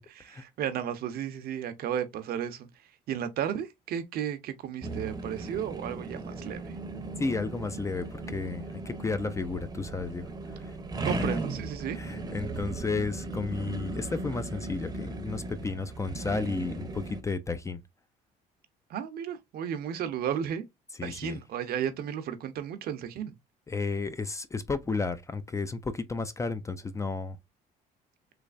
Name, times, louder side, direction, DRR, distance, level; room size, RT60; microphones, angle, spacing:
voice 1, 0.3-6.8 11.0-12.0 18.9-20.6 21.0-23.3, right 9 dB, 65° right, 0.7 m, -34 dB
sound 1, 4.8-17.2, right 2 dB, 25° right, 0.7 m, -37 dB
voice 2, 7.2-10.8 11.0-11.1 11.9-17.8 21.0-21.4 23.7-27.4, left 4 dB, 20° left, 0.4 m, -33 dB
3.2 x 3.1 x 2.4 m
cardioid pair, 110°, 17 cm